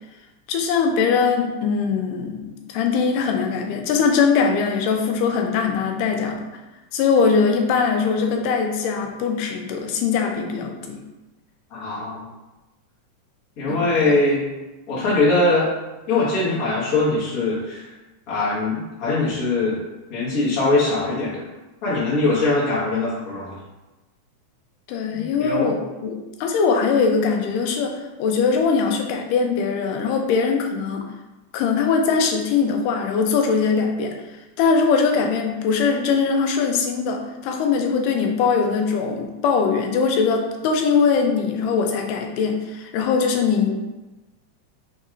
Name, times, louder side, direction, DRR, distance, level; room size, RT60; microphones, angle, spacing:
voice 1, 0.5-6.4 6.9-11.0 13.7-13.8 24.9-27.9 28.2-31.0 31.5-34.1 34.6-43.7, left 5 dB, 90° left, 3 dB, 2.2 m, -21 dB
voice 2, 11.7-12.3 13.6-14.4 14.9-15.7 16.1-17.9 18.3-19.8 20.1-21.4 21.8-23.5 25.1-25.7, left 2 dB, 45° left, -8 dB, 1.1 m, -21 dB
4.6 x 4.1 x 2.5 m, 1.1 s
omnidirectional pair, 3.7 m